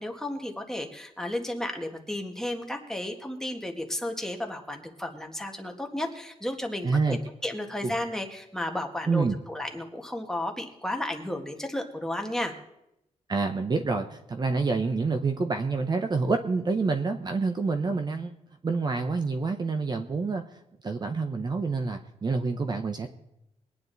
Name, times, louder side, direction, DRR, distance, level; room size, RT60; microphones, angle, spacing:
voice 1, 0.0-7.2 7.4-12.5, left 1 dB, 5° left, 2 dB, 1.7 m, -33 dB
voice 2, 6.8-7.2 7.8-7.9 9.1-9.4 13.3-18.3 18.6-20.4 20.8-23.1, right 4 dB, 35° right, 7 dB, 0.9 m, -27 dB
22.0 x 9.7 x 4.1 m, 0.84 s
wide cardioid pair, 115°, 12 cm